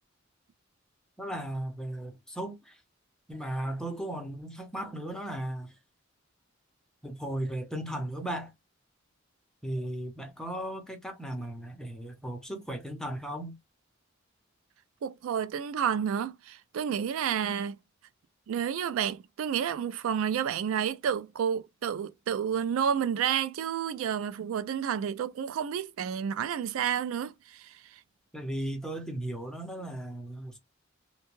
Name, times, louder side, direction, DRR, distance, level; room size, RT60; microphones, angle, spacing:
voice 1, 1.2-2.8 3.3-5.8 7.0-8.5 9.6-13.6 28.3-30.6, right 1 dB, 5° left, 0.7 m, -36 dB
voice 2, 15.0-17.8 18.5-27.8, right 8 dB, 85° right, 0.3 m, -30 dB
2.6 x 2.2 x 2.9 m
head